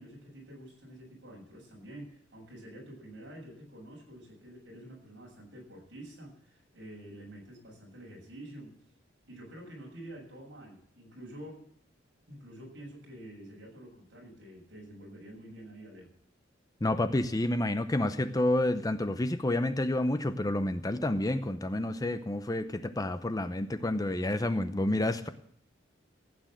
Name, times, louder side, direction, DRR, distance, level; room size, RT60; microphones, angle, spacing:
voice 1, 0.0-8.8 9.3-11.7 12.3-16.1, right 1 dB, 65° right, -1 dB, 7.0 m, -48 dB
voice 2, 16.8-25.3, left 1 dB, 20° left, 10 dB, 0.7 m, -29 dB
15.5 x 8.9 x 7.5 m, 0.63 s
head